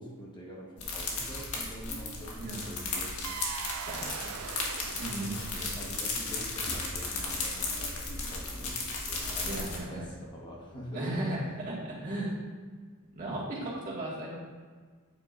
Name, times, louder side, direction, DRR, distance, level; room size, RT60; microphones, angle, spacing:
voice 1, 0.0-3.2 4.0-4.4 5.3-11.4, equal, 20° left, -4 dB, 1.2 m, -45 dB
sound 1, 0.8-9.8, left 3 dB, 80° left, 1.6 m, -35 dB
sound 2, 3.2-6.4, right 8 dB, 75° right, 0.4 m, -41 dB
voice 2, 5.0-5.4 9.4-10.1 10.9-11.4 11.7-12.3 13.1-14.4, right 1 dB, 40° right, -6 dB, 1.8 m, -35 dB
8.9 x 7.8 x 2.5 m, 1.5 s
head